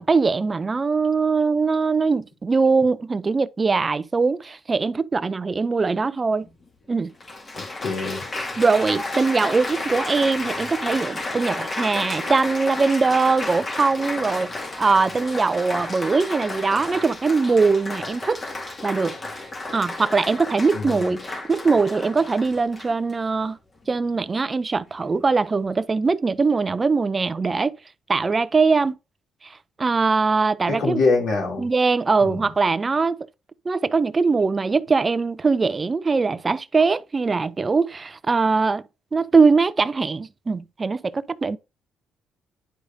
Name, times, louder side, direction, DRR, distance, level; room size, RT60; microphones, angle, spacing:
voice 1, 0.0-6.5 6.9-7.1 8.6-18.4 18.8-19.2 19.7-23.6 23.9-27.7 28.1-28.9 29.8-31.0 31.6-33.2 33.7-38.8 39.1-41.6, right 4 dB, 30° right, 0.5 m, -21 dB
Applause, 6.4-6.5 7.2-23.1 23.8-24.2, left 2 dB, 35° left, 2.1 m, -32 dB
voice 2, 7.6-8.3 20.7-21.1 30.7-31.7 32.2-32.5, left 4 dB, 80° left, 2.9 m, -25 dB
10.0 x 4.9 x 2.7 m
cardioid pair, 90°, 0 cm